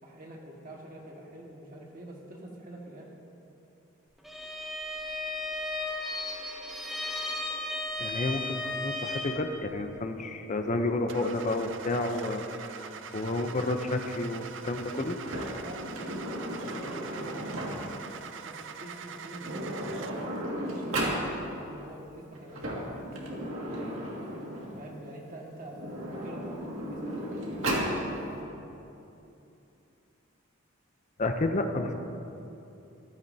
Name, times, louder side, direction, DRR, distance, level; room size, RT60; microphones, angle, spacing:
voice 1, 0.0-3.1 15.6-17.9 18.4-19.8 20.6-24.1 24.7-25.8 26.2-28.6, right 1 dB, 45° right, -2 dB, 1.6 m, -46 dB
Bowed string instrument, 4.2-9.5, left 2 dB, ahead, 0.9 m, -35 dB
voice 2, 8.0-15.2 31.2-31.9, left 2 dB, 35° left, 6 dB, 0.6 m, -31 dB
Car / Engine starting, 11.1-20.4, right 6 dB, 65° right, 0.5 m, -43 dB
Sliding door, 15.2-18.0 19.0-19.1 19.4-21.2 22.3-24.9 25.7-27.9, right 1 dB, 85° right, 2.0 m, -34 dB
14.5 x 12.5 x 2.7 m, 2.8 s
head